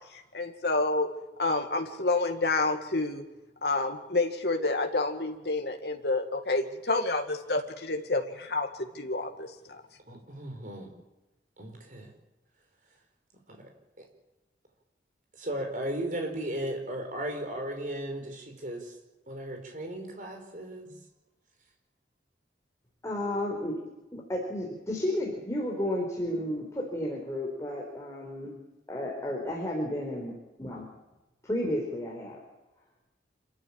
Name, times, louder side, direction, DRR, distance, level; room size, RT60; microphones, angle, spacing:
voice 1, 0.1-1.1 1.4-3.2 3.6-8.7 8.9-9.8, left 2 dB, 65° left, 4 dB, 2.1 m, -29 dB
voice 2, 10.1-10.9 11.6-12.1 13.5-13.6 14.0-14.1 15.3-18.9 19.3-21.0, right 1 dB, 45° right, 3 dB, 5.2 m, -36 dB
voice 3, 23.0-23.8 24.1-28.6 28.9-30.9 31.4-32.4, left 1 dB, 15° left, -2 dB, 4.4 m, -32 dB
26.5 x 14.5 x 8.8 m, 1.0 s
head